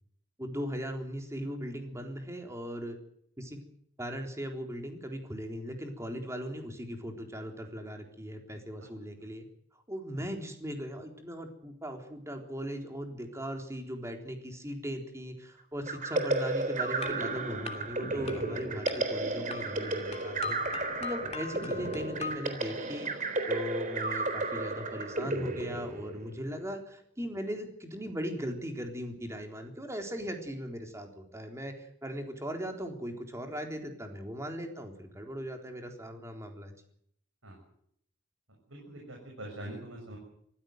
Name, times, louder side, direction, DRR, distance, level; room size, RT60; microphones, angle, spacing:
voice 1, 0.4-3.0 3.4-3.6 4.0-9.5 9.9-20.6 21.0-23.1 23.5-36.7, equal, 15° right, 3 dB, 3.7 m, -38 dB
sound 1, 15.9-26.4, right 2 dB, 40° right, 3.8 m, -33 dB
sound 2, 17.0-22.4, left 3 dB, 30° left, 2.9 m, -42 dB
voice 2, 38.7-40.2, right 1 dB, 80° right, 0 dB, 7.0 m, -44 dB
24.5 x 16.0 x 8.0 m, 0.69 s
head